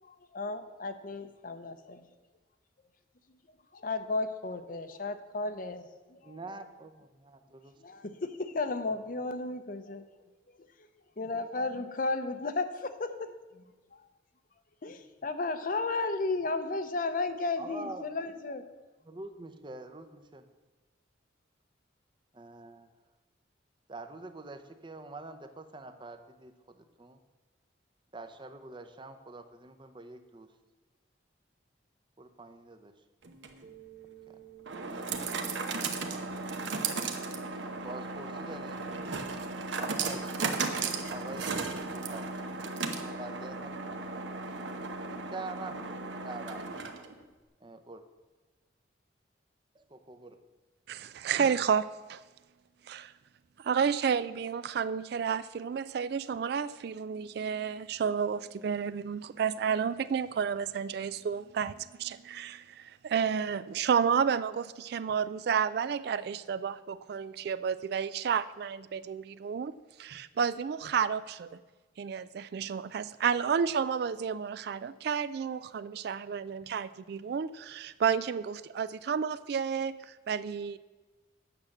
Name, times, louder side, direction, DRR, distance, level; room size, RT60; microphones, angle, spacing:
voice 1, 0.0-2.1 3.7-6.4 7.8-10.0 11.2-13.6 14.8-18.7, left 3 dB, 45° left, 10 dB, 0.7 m, -34 dB
voice 2, 6.2-7.7 17.6-18.1 19.0-20.4 22.3-22.9 23.9-27.2 28.1-30.5 32.2-32.9 34.9-36.3 37.5-38.8 39.7-42.3 42.8-43.7 44.1-44.2 45.3-45.8 46.2-46.6 47.6-48.0 49.7-50.4, right 2 dB, 25° right, 8 dB, 0.7 m, -45 dB
sound 1, 33.2-47.2, right 4 dB, 75° right, 0.9 m, -36 dB
voice 3, 50.9-52.2 52.9-53.1 53.6-71.6 72.0-80.8, right 7 dB, 55° right, 15 dB, 0.3 m, -31 dB
8.9 x 6.4 x 7.2 m, 1.3 s
head